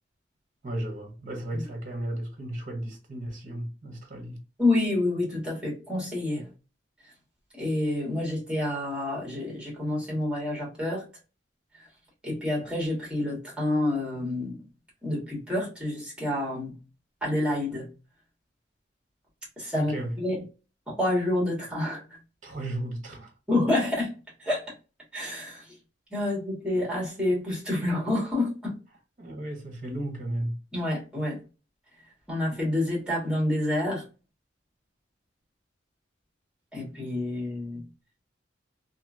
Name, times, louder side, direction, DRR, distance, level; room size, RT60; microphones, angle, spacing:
voice 1, 0.6-4.4 19.7-20.1 22.4-23.3 29.2-30.6, right 1 dB, 45° right, 0.8 m, -34 dB
voice 2, 4.6-6.5 7.5-11.0 12.2-14.6 15.0-16.8 17.2-17.9 19.6-20.4 20.9-22.0 23.5-24.1 24.4-24.7 25.1-25.7 26.1-28.8 30.7-31.4 32.3-34.0 36.7-37.8, left 1 dB, 5° right, 1.4 m, -28 dB
2.8 x 2.5 x 2.4 m
head